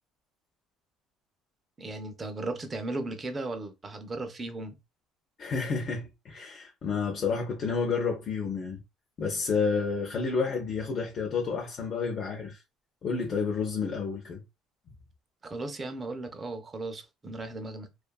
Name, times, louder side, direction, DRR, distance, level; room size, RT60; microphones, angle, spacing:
voice 1, 1.8-4.8 15.4-17.9, right 2 dB, 25° right, 0.5 m, -36 dB
voice 2, 5.4-8.8 9.2-12.6 13.0-14.4, left 5 dB, 40° left, 0.5 m, -30 dB
2.5 x 2.3 x 2.2 m
cardioid pair, 130°, 0 cm